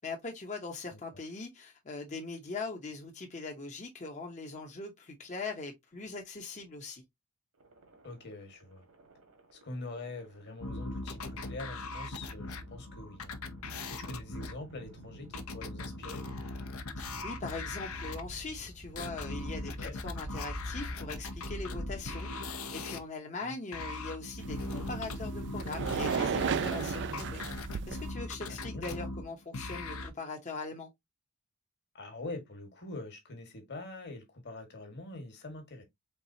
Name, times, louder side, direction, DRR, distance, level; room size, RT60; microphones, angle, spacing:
voice 1, 0.0-7.0 14.0-14.2 17.0-27.4 27.9-30.9, left 3 dB, 35° left, 0.9 m, -41 dB
sound 1, 7.6-22.7, equal, 75° right, 1.8 m, -48 dB
voice 2, 8.0-8.9 9.5-13.3 13.9-16.3 19.8-20.0 23.4-23.8 26.9-27.4 28.5-28.9 31.9-35.8, left 2 dB, 50° left, 1.7 m, -44 dB
sound 2, 10.6-18.2 19.0-23.0 23.7-30.1, left 2 dB, 65° left, 0.8 m, -40 dB
sound 3, 24.4-28.1, right 6 dB, 55° right, 0.4 m, -34 dB
4.7 x 3.6 x 2.8 m
head